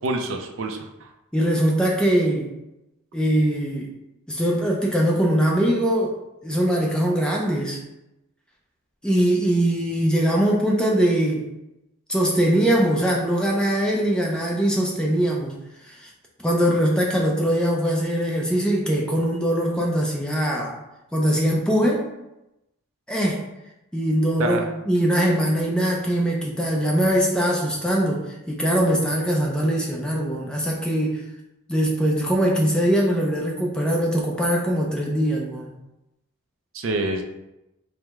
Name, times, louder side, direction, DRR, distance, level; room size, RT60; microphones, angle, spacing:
voice 1, 0.0-1.1 24.4-24.7 36.7-37.2, right 2 dB, 65° right, 4 dB, 0.4 m, -27 dB
voice 2, 1.3-2.5 3.1-3.9 4.3-6.1 6.4-7.8 9.0-11.4 12.1-15.6 15.8-16.1 16.4-20.8 21.1-22.0 23.1-23.4 23.9-31.2 31.7-35.7, equal, 5° left, -1 dB, 0.4 m, -22 dB
4.6 x 2.1 x 3.5 m, 0.93 s
head